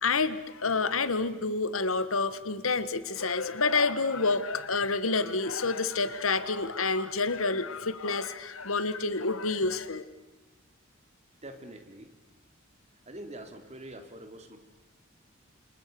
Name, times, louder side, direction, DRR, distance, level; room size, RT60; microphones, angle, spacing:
voice 1, 0.0-10.0, left 3 dB, 85° left, 13 dB, 1.6 m, -28 dB
voice 2, 11.4-12.1 13.1-14.6, right 1 dB, 35° right, 6 dB, 3.1 m, -44 dB
29.0 x 27.5 x 6.9 m, 1.1 s
head